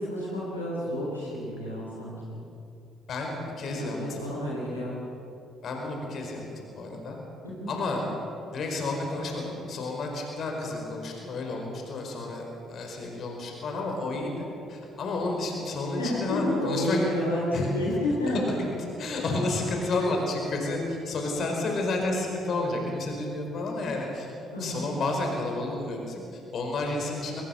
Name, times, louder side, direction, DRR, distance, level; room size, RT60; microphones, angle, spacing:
voice 1, 0.0-2.4 3.6-4.9 7.4-7.7 16.0-18.6 20.0-20.1 24.5-24.9, left 1 dB, 85° left, -6 dB, 3.7 m, -30 dB
voice 2, 3.1-4.2 5.6-7.2 7.7-8.0 8.5-17.1 17.5-17.7 18.5-24.3 24.6-27.4, left 2 dB, 50° left, 1 dB, 4.9 m, -31 dB
22.5 x 19.5 x 6.6 m, 2.7 s
figure-of-eight pair, 45°, 0 cm